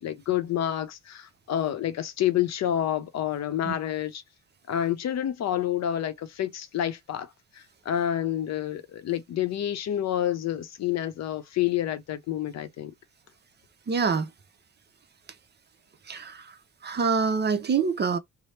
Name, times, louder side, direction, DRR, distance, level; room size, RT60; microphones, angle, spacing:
voice 1, 0.0-4.2 4.7-12.9, left 11 dB, 60° left, 0.6 m, -28 dB
voice 2, 13.9-14.3 16.1-16.5 16.8-18.2, right 5 dB, 35° right, 0.6 m, -25 dB
2.8 x 2.0 x 3.1 m
cardioid pair, 90°, 30 cm